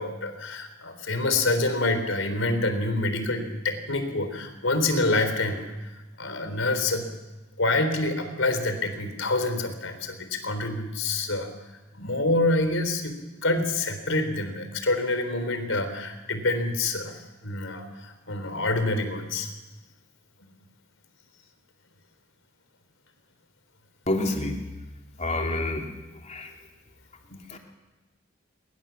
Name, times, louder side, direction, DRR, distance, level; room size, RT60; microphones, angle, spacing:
voice 1, 0.0-7.1 7.6-11.5 11.9-19.5 27.3-27.4, left 2 dB, 85° left, 8 dB, 4.1 m, -27 dB
voice 2, 24.1-24.6 25.2-25.9 26.3-26.5 27.5-27.6, left 2 dB, 35° left, 2 dB, 3.2 m, -27 dB
28.5 x 22.0 x 7.3 m, 1.1 s
head